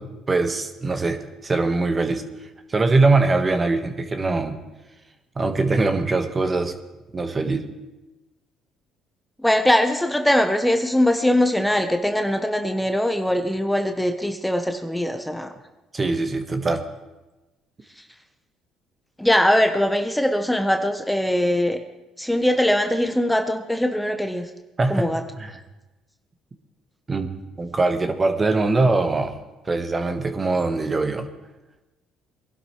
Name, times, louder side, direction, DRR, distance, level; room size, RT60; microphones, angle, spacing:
voice 1, 0.0-2.2 2.7-4.6 5.4-6.7 7.1-7.7 15.9-16.8 24.8-25.1 25.4-25.5 27.1-27.3 27.6-29.3 29.7-31.3, right 3 dB, 30° right, 6 dB, 1.5 m, -22 dB
voice 2, 9.4-15.5 18.0-18.1 19.2-21.8 22.2-24.5 24.9-25.2, left 1 dB, 5° left, 6 dB, 1.1 m, -21 dB
22.0 x 12.0 x 3.3 m, 1.1 s
supercardioid pair, 65°, 0 cm